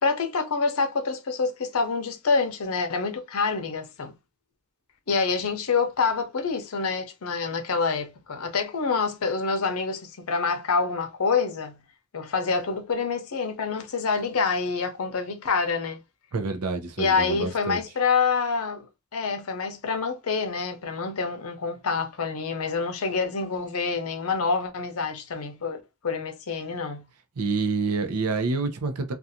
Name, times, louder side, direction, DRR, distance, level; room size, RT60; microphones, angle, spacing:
voice 1, 0.0-4.1 5.1-11.8 12.1-16.0 17.0-18.9 19.1-27.1, left 4 dB, 75° left, 0.6 m, -27 dB
voice 2, 16.3-17.8 27.4-29.1, right 4 dB, 90° right, 0.6 m, -27 dB
2.5 x 2.3 x 2.7 m
head